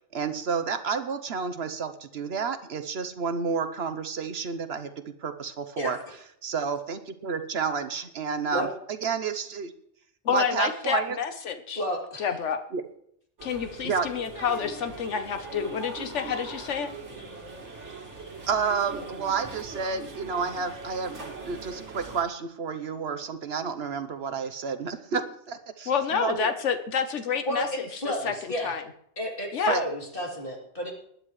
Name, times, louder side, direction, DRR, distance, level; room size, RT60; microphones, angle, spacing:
voice 1, 0.1-6.0 6.4-9.7 10.3-11.2 12.7-12.8 13.8-14.1 18.5-26.5 29.7-29.8, right 5 dB, 65° right, 10 dB, 1.1 m, -30 dB
voice 2, 10.2-11.8 12.2-12.6 13.4-16.9 25.9-27.7 28.2-28.8 29.5-29.8, left 7 dB, 80° left, 7 dB, 1.2 m, -28 dB
voice 3, 11.8-12.3 27.4-28.8 29.2-30.9, equal, 50° left, -1 dB, 3.3 m, -31 dB
sound 1, 13.4-22.2, right 3 dB, 85° right, 2.3 m, -41 dB
20.0 x 10.5 x 3.1 m, 0.70 s
omnidirectional pair, 1.2 m